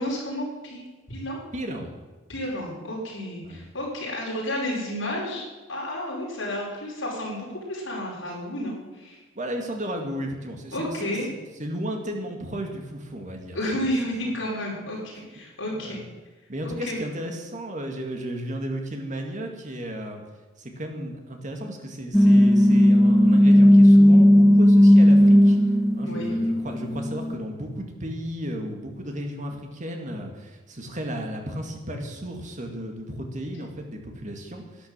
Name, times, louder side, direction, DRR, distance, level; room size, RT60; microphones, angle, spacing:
voice 1, 0.0-1.4 2.3-5.4 5.7-9.2 10.7-11.3 13.5-16.0 16.6-17.0 26.1-26.3, left 1 dB, 75° left, -4 dB, 5.5 m, -31 dB
voice 2, 1.5-2.0 3.4-3.6 9.4-11.2 11.6-13.9 15.1-15.3 15.7-16.1 16.5-20.2 20.6-25.6 25.9-34.9, equal, 40° right, 3 dB, 2.2 m, -34 dB
sound 1, 22.1-27.3, equal, ahead, 0.5 m, -15 dB
12.0 x 10.5 x 7.4 m, 1.2 s
head